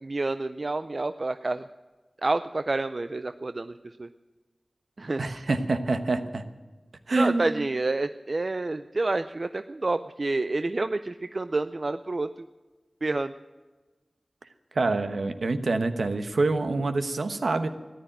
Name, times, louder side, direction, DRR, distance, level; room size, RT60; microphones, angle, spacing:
voice 1, 0.0-1.7 2.2-4.1 5.0-5.2 7.2-12.5 13.0-13.3, right 2 dB, 55° right, 11 dB, 0.5 m, -29 dB
voice 2, 5.2-6.4 7.1-7.6 14.7-17.7, right 3 dB, 80° right, 9 dB, 1.1 m, -26 dB
14.0 x 10.5 x 8.8 m, 1.2 s
cardioid pair, 45°, 0 cm